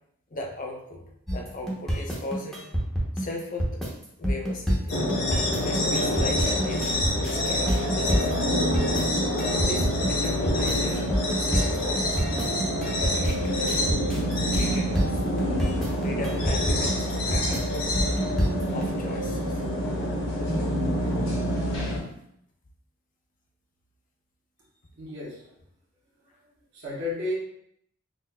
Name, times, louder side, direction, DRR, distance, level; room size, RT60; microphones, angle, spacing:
voice 1, 0.3-1.0 1.3-2.6 3.2-3.8 4.2-5.0 5.6-8.5 9.6-12.3 12.8-13.9 14.5-15.3 16.0-17.9 18.7-19.6, left 1 dB, 40° left, 1 dB, 0.6 m, -37 dB
sound 1, 1.3-18.9, equal, ahead, 0.7 m, -27 dB
sound 2, 4.9-22.0, left 1 dB, 75° left, 1.1 m, -26 dB
voice 2, 25.0-25.4 26.7-27.3, left 2 dB, 55° right, -6 dB, 1.3 m, -32 dB
5.8 x 2.5 x 2.2 m, 0.73 s
head